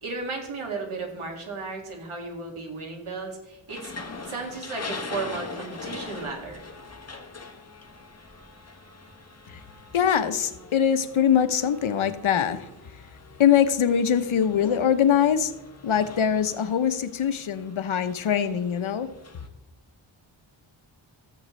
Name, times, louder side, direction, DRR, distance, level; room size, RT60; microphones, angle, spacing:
voice 1, 0.0-3.9 4.2-6.6, right 3 dB, 85° right, 1 dB, 2.2 m, -34 dB
sound 1, 3.7-19.5, left 3 dB, 30° left, 1.2 m, -43 dB
voice 2, 9.9-12.7 13.4-15.5 15.8-19.1, left 8 dB, 75° left, 11 dB, 0.8 m, -22 dB
13.5 x 7.7 x 3.2 m, 0.93 s
wide cardioid pair, 85°, 49 cm